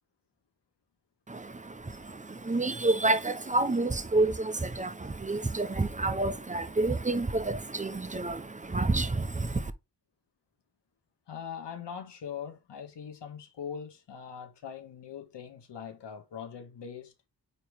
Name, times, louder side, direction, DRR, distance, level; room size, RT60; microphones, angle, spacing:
voice 1, 1.3-9.7, right 2 dB, 20° right, 0.7 m, -29 dB
voice 2, 11.3-17.1, left 7 dB, 85° left, 1.6 m, -41 dB
9.0 x 3.1 x 3.5 m
wide cardioid pair, 90°, 41 cm